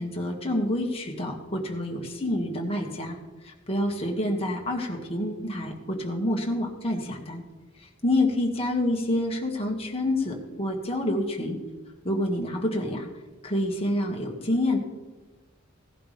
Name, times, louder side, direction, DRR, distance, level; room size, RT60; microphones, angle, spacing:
voice 1, 0.0-3.2 3.4-7.4 7.8-11.6 12.0-13.1 13.4-14.8, left 1 dB, 30° left, 0 dB, 1.9 m, -28 dB
17.5 x 11.0 x 3.4 m, 1.2 s
head